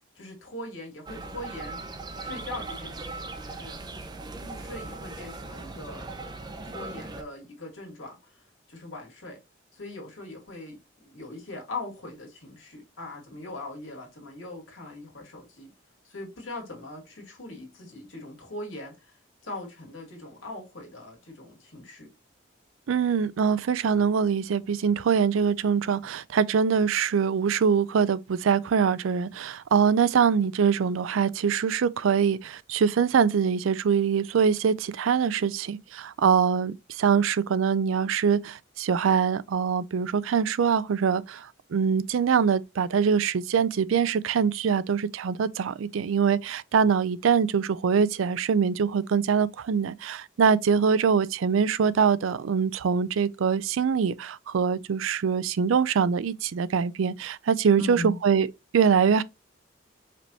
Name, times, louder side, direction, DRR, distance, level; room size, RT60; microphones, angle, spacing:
voice 1, 0.2-1.8 2.2-3.8 4.4-6.1 6.6-8.4 8.7-9.4 9.7-15.7 16.0-19.1 19.4-22.1 57.8-58.2, left 2 dB, 90° left, 2.2 m, -40 dB
sound 1, 1.1-7.2, right 3 dB, 20° right, 0.6 m, -39 dB
voice 2, 22.9-58.5 58.7-59.2, right 6 dB, 90° right, 0.4 m, -23 dB
5.0 x 3.4 x 2.8 m
head